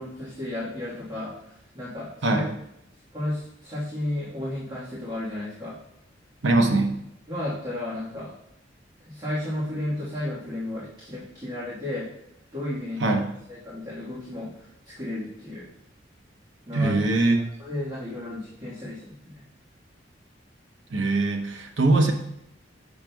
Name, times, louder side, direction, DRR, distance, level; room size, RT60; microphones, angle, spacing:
voice 1, 0.0-1.3 1.7-2.6 3.1-5.8 7.3-8.3 9.0-12.1 12.5-13.2 13.5-14.5 14.8-15.7 16.7-17.0 17.6-19.4, left 1 dB, 25° right, -10 dB, 1.5 m, -33 dB
voice 2, 6.4-6.9 13.0-13.2 16.7-17.4 20.9-22.1, right 2 dB, 75° right, 3 dB, 0.9 m, -21 dB
7.3 x 6.1 x 2.3 m, 0.80 s
head